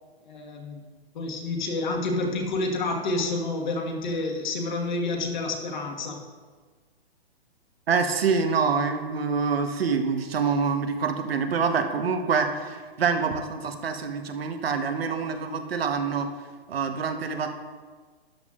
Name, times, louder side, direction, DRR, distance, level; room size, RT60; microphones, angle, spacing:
voice 1, 0.3-0.9 1.1-6.2, left 2 dB, 45° left, 1 dB, 1.5 m, -29 dB
voice 2, 7.9-16.3 16.7-17.5, right 5 dB, 70° right, 6 dB, 1.1 m, -26 dB
13.0 x 10.0 x 2.4 m, 1.5 s
hypercardioid pair, 170°, 32 cm